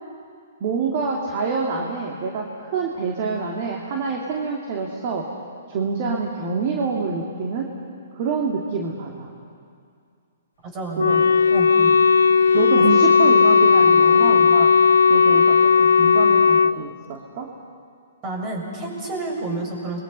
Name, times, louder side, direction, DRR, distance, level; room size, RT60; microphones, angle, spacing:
voice 1, 0.6-5.3 5.7-7.7 8.1-9.3 11.0-11.2 11.8-12.0 12.5-14.7 15.1-17.5, right 4 dB, 45° right, 0 dB, 2.7 m, -26 dB
voice 2, 10.7-11.2 11.5-11.7 18.2-20.0, right 2 dB, 30° right, 0 dB, 7.2 m, -29 dB
Wind instrument woodwind instrument, 11.0-16.7, left 5 dB, 80° left, 0.6 m, -15 dB
29.5 x 22.5 x 5.6 m, 2.3 s
hypercardioid pair, 125°, 0 cm